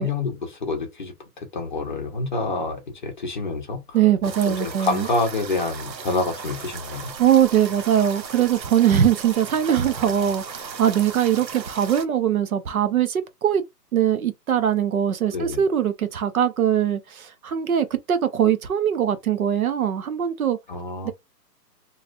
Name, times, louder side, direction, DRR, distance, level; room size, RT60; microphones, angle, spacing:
voice 1, 0.0-4.0 4.5-7.1 10.0-10.1 15.3-15.6 20.7-21.1, left 3 dB, 30° left, 0.7 m, -27 dB
voice 2, 3.9-5.1 7.2-13.6 13.9-20.6 21.0-21.1, right 9 dB, 55° right, 0.8 m, -21 dB
sound 1, 4.2-12.0, right 6 dB, 80° right, 1.0 m, -36 dB
3.1 x 2.4 x 2.4 m
hypercardioid pair, 165°, 50 cm